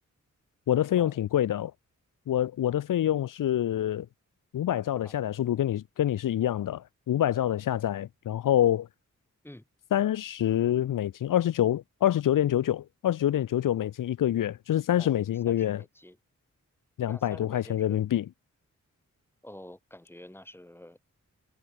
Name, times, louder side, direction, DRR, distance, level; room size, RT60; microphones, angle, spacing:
voice 1, 0.7-1.7 2.3-4.1 4.5-8.9 9.9-15.8 17.0-18.2, left 11 dB, 85° left, 0.5 m, -26 dB
voice 2, 15.0-16.2 17.1-18.0 19.4-21.0, left 1 dB, 5° left, 6.4 m, -48 dB
wide cardioid pair, 175°, 31 cm